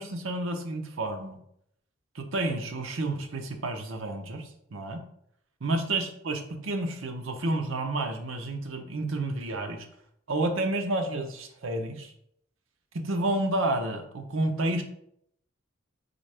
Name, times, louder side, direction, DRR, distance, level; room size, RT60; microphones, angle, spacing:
voice 1, 0.0-1.4 2.1-5.0 5.6-9.9 10.3-12.1 13.0-14.8, right 2 dB, 70° right, 5 dB, 0.7 m, -30 dB
3.9 x 3.6 x 3.3 m, 0.71 s
head